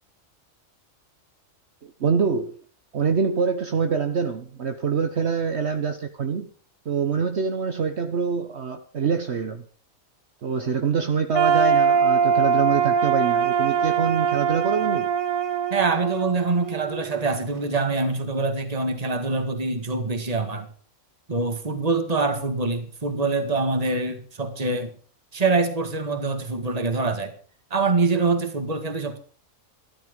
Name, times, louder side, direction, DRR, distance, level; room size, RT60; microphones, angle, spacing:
voice 1, 1.8-2.6 2.9-6.5 6.8-9.6 10.4-15.1, right 6 dB, 55° right, 7 dB, 1.3 m, -25 dB
sound 1, 11.3-17.3, right 6 dB, 85° right, 1.7 m, -22 dB
voice 2, 15.7-20.7 21.3-24.9 25.3-27.3 27.7-29.2, right 3 dB, 30° right, 7 dB, 2.0 m, -25 dB
14.0 x 13.0 x 5.3 m, 0.43 s
omnidirectional pair, 1.4 m